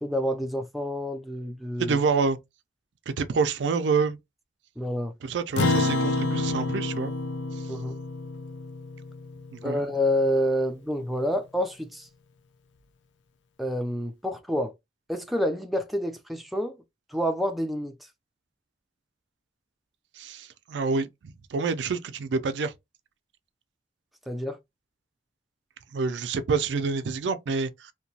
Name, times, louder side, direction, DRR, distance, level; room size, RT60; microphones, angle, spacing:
voice 1, 0.0-2.0 4.8-5.1 7.7-8.0 9.6-12.1 13.6-14.7 15.1-16.8 17.1-18.1 24.3-24.6, equal, ahead, 0.3 m, -28 dB
voice 2, 1.8-2.4 3.1-4.2 5.2-7.1 7.5-7.6 9.5-9.8 20.2-22.7 25.9-27.9, right 4 dB, 75° right, 0.4 m, -27 dB
Acoustic guitar, 5.6-10.3, left 2 dB, 85° left, 0.4 m, -29 dB
2.9 x 2.2 x 2.7 m
head